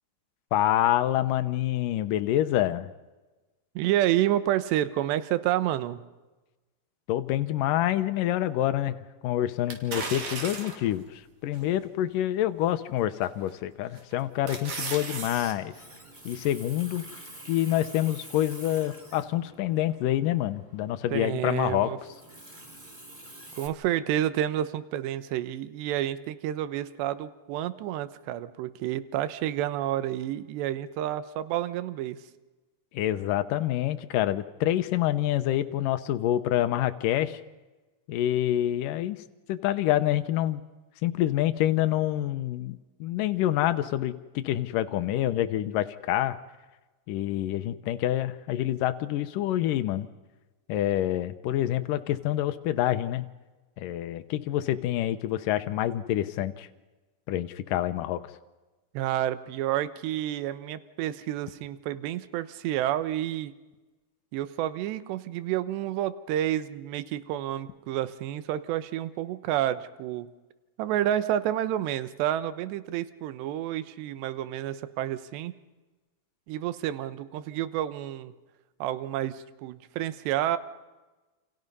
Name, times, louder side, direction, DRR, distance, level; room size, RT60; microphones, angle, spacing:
voice 1, 0.5-2.9 7.1-9.0 9.2-15.7 16.3-17.0 17.5-21.9 32.9-37.4 38.1-39.2 39.5-40.6 41.0-46.4 47.1-50.1 50.7-53.2 53.8-56.7 57.3-58.2, left 13 dB, 85° left, 10 dB, 1.9 m, -27 dB
voice 2, 3.8-6.0 21.1-22.0 23.6-32.2 58.9-63.5 64.3-70.3 70.8-75.5 76.5-78.3 78.8-80.6, right 12 dB, 75° right, 13 dB, 3.1 m, -29 dB
sound 1, 9.7-10.9 11.5-11.6 13.2-13.6 14.0-15.5 15.9-16.0, right 4 dB, 45° right, 3.7 m, -35 dB
Water tap faucet, 15.5-23.7, right 1 dB, 15° right, 2.3 m, -48 dB
29.5 x 28.5 x 5.5 m, 1.2 s
omnidirectional pair, 5.2 m